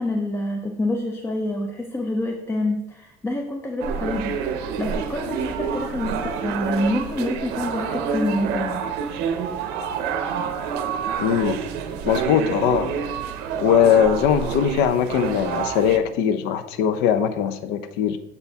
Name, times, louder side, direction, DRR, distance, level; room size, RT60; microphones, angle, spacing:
voice 1, 0.0-8.9, left 1 dB, 15° left, 2 dB, 0.4 m, -27 dB
sound 1, 3.8-16.0, right 7 dB, 70° right, 0.6 m, -28 dB
voice 2, 11.2-11.6 12.1-12.9 13.6-18.2, left 8 dB, 80° left, 11 dB, 0.5 m, -20 dB
6.8 x 4.2 x 3.5 m, 0.87 s
cardioid pair, 170°, 17 cm